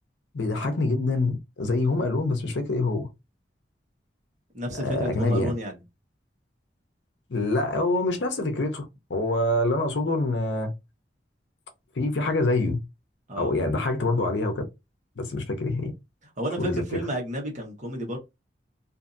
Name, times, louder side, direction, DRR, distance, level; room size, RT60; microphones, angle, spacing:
voice 1, 0.3-3.1 4.7-5.5 7.3-10.7 11.9-12.8 13.4-14.6 15.2-15.9 16.6-17.1, left 2 dB, 85° left, 0.7 m, -25 dB
voice 2, 4.5-5.8 13.3-13.5 16.4-18.2, right 1 dB, 45° right, 1.2 m, -31 dB
2.7 x 2.6 x 2.5 m
head